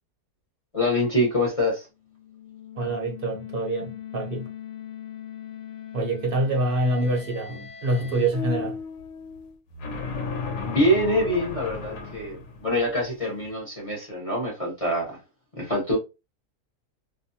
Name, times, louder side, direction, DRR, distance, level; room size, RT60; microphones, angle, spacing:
voice 1, 0.7-1.9 10.6-15.2 15.6-16.0, equal, 30° left, 0.7 m, -25 dB
sound 1, 2.0-8.3, left 9 dB, 70° left, 0.9 m, -41 dB
voice 2, 2.8-4.5 5.9-8.8, right 2 dB, 50° right, 0.7 m, -26 dB
sound 2, 8.3-13.4, left 4 dB, 90° left, 1.1 m, -34 dB
2.6 x 2.2 x 2.6 m
omnidirectional pair, 1.6 m